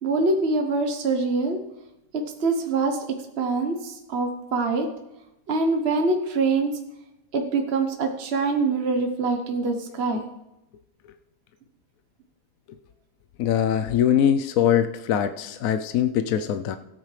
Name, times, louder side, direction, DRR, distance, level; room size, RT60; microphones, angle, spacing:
voice 1, 0.0-1.6 2.1-3.0 3.4-4.9 5.5-6.8 7.3-10.2, right 3 dB, 45° right, 4 dB, 1.1 m, -24 dB
voice 2, 13.4-16.8, left 9 dB, 65° left, 9 dB, 0.9 m, -22 dB
17.5 x 8.9 x 3.3 m, 0.90 s
omnidirectional pair, 1.8 m